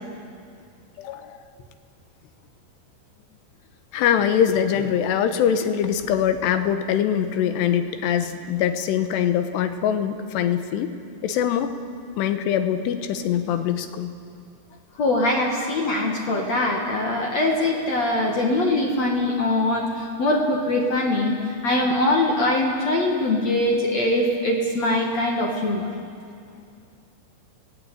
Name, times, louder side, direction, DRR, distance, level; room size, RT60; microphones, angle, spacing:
voice 1, 1.0-1.4 3.9-10.9 11.2-11.8 12.2-14.1, left 9 dB, 75° left, 9 dB, 3.1 m, -23 dB
voice 2, 15.0-25.9, left 1 dB, 50° left, 0 dB, 2.4 m, -22 dB
29.0 x 18.0 x 8.6 m, 2.4 s
omnidirectional pair, 5.2 m